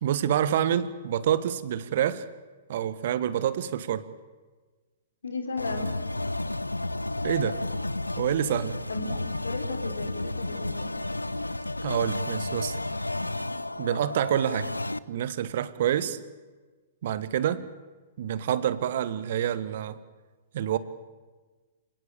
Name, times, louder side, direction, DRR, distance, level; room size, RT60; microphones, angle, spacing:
voice 1, 0.0-2.3 2.7-4.1 7.2-7.6 8.2-8.7 11.8-12.8 13.8-14.7 15.1-16.2 17.0-17.6 18.2-20.0 20.5-20.8, right 10 dB, 55° right, 15 dB, 1.3 m, -27 dB
voice 2, 5.2-6.0 8.9-11.0, left 3 dB, 75° left, 5 dB, 4.3 m, -35 dB
sound 1, 5.6-15.0, left 2 dB, 90° left, 0.7 m, -32 dB
27.5 x 18.0 x 8.5 m, 1.3 s
figure-of-eight pair, 115°, 0 cm